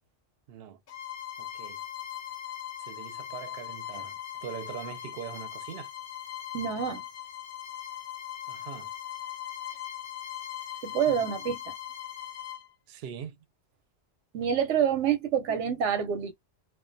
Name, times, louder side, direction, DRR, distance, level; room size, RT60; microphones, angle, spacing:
voice 1, 0.5-0.8 1.4-1.8 2.8-5.9 8.5-8.9 11.1-11.2 12.9-13.4, right 9 dB, 65° right, 0.7 m, -42 dB
Bowed string instrument, 0.9-12.7, left 11 dB, 60° left, 0.7 m, -40 dB
voice 2, 6.5-7.0 10.8-11.7 14.3-16.3, right 8 dB, 90° right, 0.9 m, -27 dB
2.3 x 2.2 x 2.5 m
omnidirectional pair, 1.2 m